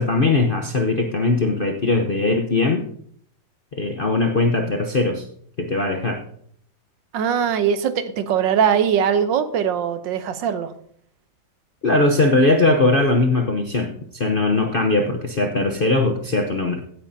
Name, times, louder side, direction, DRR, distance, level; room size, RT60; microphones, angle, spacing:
voice 1, 0.0-2.9 3.7-5.3 5.6-6.2 11.8-16.8, left 2 dB, 50° left, 3 dB, 0.6 m, -20 dB
voice 2, 7.1-10.7, right 8 dB, 75° right, 11 dB, 1.5 m, -21 dB
16.0 x 9.1 x 2.7 m, 0.62 s
omnidirectional pair, 2.0 m